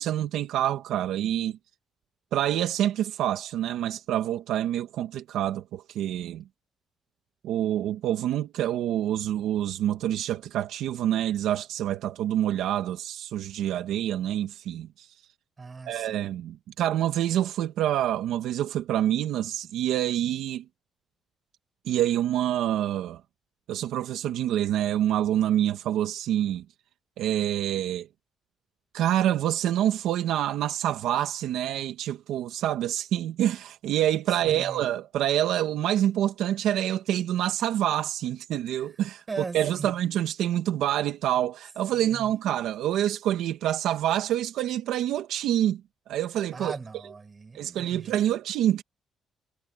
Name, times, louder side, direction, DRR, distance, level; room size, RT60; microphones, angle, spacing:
voice 1, 0.0-1.6 2.3-6.4 7.4-15.1 15.9-20.6 21.9-23.2 23.7-26.6 27.2-28.1 28.9-45.8 46.1-46.8 47.5-48.8, right 11 dB, 85° right, 1.8 m, -27 dB
voice 2, 15.6-16.3 34.4-34.8 39.3-39.9 41.9-42.3 46.5-48.2, right 4 dB, 30° right, 7.7 m, -39 dB
cardioid pair, 90°, 0 cm